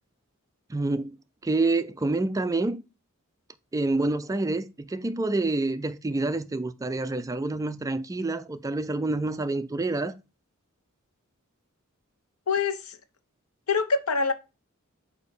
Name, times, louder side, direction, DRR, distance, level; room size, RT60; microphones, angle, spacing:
voice 1, 0.7-1.2 1.4-2.8 3.7-10.1, right 2 dB, 15° right, 0.3 m, -27 dB
voice 2, 12.5-13.0 13.7-14.3, left 4 dB, 85° left, 0.8 m, -25 dB
8.2 x 2.8 x 5.1 m
head